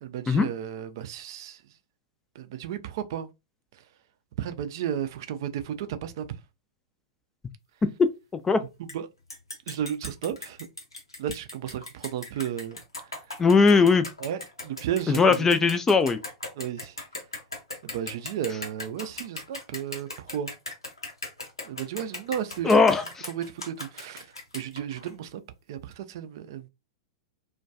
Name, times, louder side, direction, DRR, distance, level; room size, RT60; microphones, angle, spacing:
voice 1, 0.0-1.6 2.4-3.3 4.4-6.3 8.8-9.1 9.7-10.6 11.2-12.8 14.2-15.6 16.6-16.9 17.8-20.5 21.6-22.7 23.3-24.3 24.5-25.4 25.7-26.7, right 9 dB, 55° right, 0.4 m, -33 dB
sound 1, 8.9-9.0 9.3-25.1, left 2 dB, 90° left, 0.8 m, -39 dB
voice 2, 13.4-14.1 15.1-16.2 22.6-23.3, left 4 dB, 15° left, 0.4 m, -19 dB
2.2 x 2.2 x 2.6 m
figure-of-eight pair, 100°, 3 cm